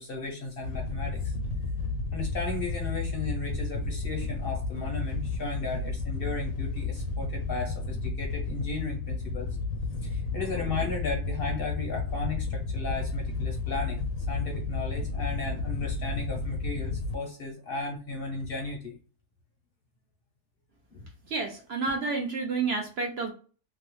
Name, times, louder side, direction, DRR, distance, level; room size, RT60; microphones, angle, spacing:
voice 1, 0.0-1.3 2.1-9.5 10.0-19.0 20.9-21.1, left 3 dB, 55° left, 1 dB, 0.7 m, -35 dB
Wind / Boat Water vehicle, 0.6-17.1, left 3 dB, 80° left, 1.0 m, -32 dB
voice 2, 21.3-23.3, right 4 dB, 60° right, 2 dB, 0.7 m, -30 dB
2.7 x 2.0 x 3.0 m, 0.37 s
omnidirectional pair, 1.4 m